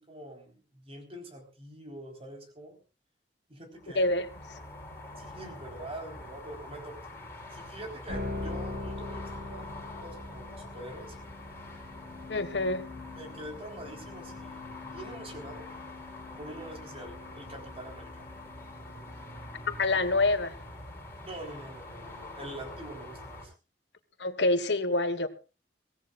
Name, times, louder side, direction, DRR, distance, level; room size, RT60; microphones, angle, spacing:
voice 1, 0.0-2.8 3.5-4.1 5.2-7.0 7.5-11.2 13.2-15.7 16.4-18.2 21.2-23.5, right 1 dB, 35° right, 4 dB, 4.2 m, -45 dB
sound 1, 3.7-23.5, left 1 dB, 15° left, 7.9 m, -45 dB
voice 2, 3.9-4.3 12.3-12.9 19.7-20.6 24.2-25.3, left 2 dB, 75° left, 10 dB, 1.5 m, -26 dB
sound 2, 8.1-20.4, left 2 dB, 60° right, 5.1 m, -43 dB
23.5 x 17.0 x 2.4 m, 0.32 s
head